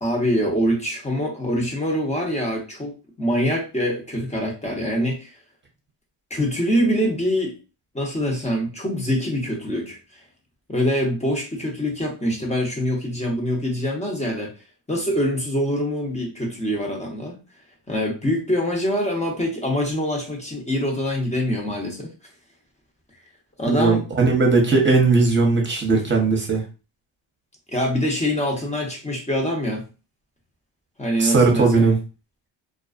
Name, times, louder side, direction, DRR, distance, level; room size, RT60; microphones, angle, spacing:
voice 1, 0.0-5.3 6.3-7.5 7.9-10.0 10.7-14.5 14.9-17.4 17.9-22.1 23.6-24.0 27.7-29.8 31.0-31.9, equal, 15° left, 0 dB, 0.9 m, -24 dB
voice 2, 23.7-26.6 31.2-32.0, right 3 dB, 25° right, 1 dB, 1.0 m, -18 dB
2.3 x 2.3 x 2.4 m, 0.32 s
cardioid pair, 85°, 49 cm